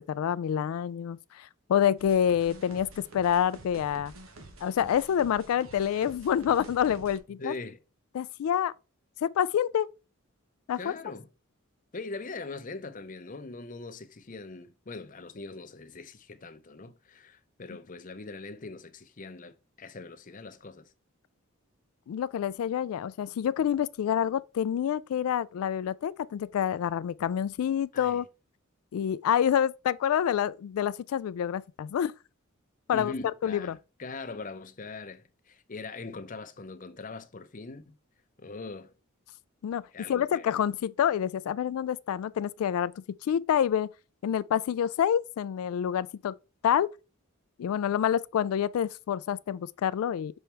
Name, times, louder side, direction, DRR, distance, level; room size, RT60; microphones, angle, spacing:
voice 1, 0.1-4.1 4.6-7.5 8.1-8.7 9.2-9.9 10.7-10.9 22.1-28.3 28.9-32.1 32.9-33.1 33.4-33.8 39.6-39.8 40.1-42.9 43.2-43.9 44.2-46.3 46.6-46.9 47.6-50.4, left 9 dB, 85° left, 0.3 m, -27 dB
sound 1, 2.0-7.2, right 2 dB, 70° right, 1.1 m, -49 dB
voice 2, 7.4-7.8 10.8-11.3 11.9-20.9 27.9-28.2 32.9-38.0 38.4-38.9 39.9-40.5, left 3 dB, 40° left, 0.7 m, -41 dB
6.3 x 4.4 x 3.4 m
head